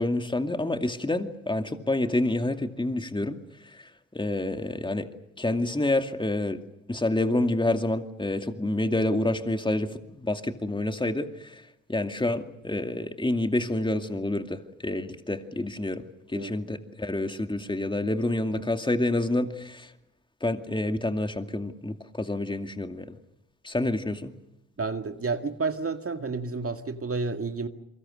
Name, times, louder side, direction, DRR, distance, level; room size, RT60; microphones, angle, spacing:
voice 1, 0.0-3.4 3.6-5.1 5.4-6.6 6.9-11.6 11.9-16.0 16.3-19.9 20.4-23.2 23.6-24.3, left 2 dB, 15° left, 6 dB, 2.4 m, -28 dB
voice 2, 24.8-27.7, right 4 dB, 40° right, 6 dB, 2.1 m, -30 dB
27.5 x 24.0 x 6.5 m, 0.85 s
hypercardioid pair, 40°, 35 cm